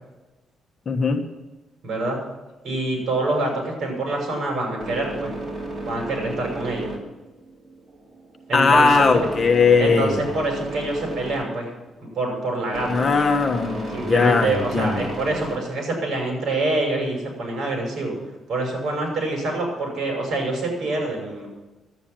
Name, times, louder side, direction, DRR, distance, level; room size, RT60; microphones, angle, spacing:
voice 1, 0.9-1.2 8.5-10.2 12.9-15.1, left 4 dB, 35° left, 4 dB, 1.3 m, -19 dB
voice 2, 1.8-2.2 2.6-5.3 5.9-6.9 8.5-9.3 9.8-11.7 12.1-13.1 13.9-18.1 18.5-21.5, right 2 dB, 55° right, 1 dB, 6.2 m, -26 dB
sound 1, 3.3-16.2, right 2 dB, 30° right, 2.6 m, -34 dB
11.5 x 9.4 x 8.9 m, 1.1 s
cardioid pair, 135°, 0 cm